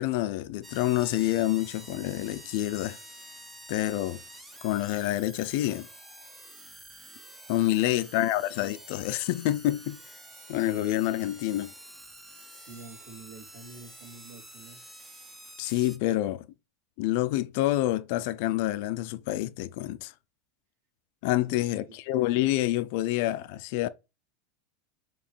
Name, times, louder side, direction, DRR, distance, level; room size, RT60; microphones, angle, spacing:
voice 1, 0.0-3.0 3.7-4.2 4.6-5.9 7.5-10.0 10.5-11.7 15.6-16.5 17.0-20.1 21.2-23.9, left 15 dB, 50° left, 0.6 m, -27 dB
sound 1, 0.6-16.0, right 1 dB, 10° right, 0.7 m, -48 dB
voice 2, 7.7-8.4 12.5-14.8 21.5-22.0, right 3 dB, 65° right, 2.4 m, -48 dB
7.2 x 3.2 x 4.5 m
supercardioid pair, 175°, 0 cm